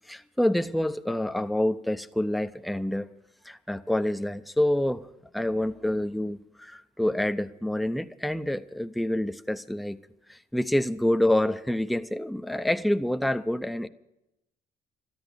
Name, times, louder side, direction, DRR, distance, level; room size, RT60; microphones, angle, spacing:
voice 1, 0.1-3.1 3.5-5.1 5.3-10.0 10.3-13.9, left 1 dB, ahead, 0.7 m, -27 dB
13.0 x 10.5 x 8.1 m
supercardioid pair, 65°, 21 cm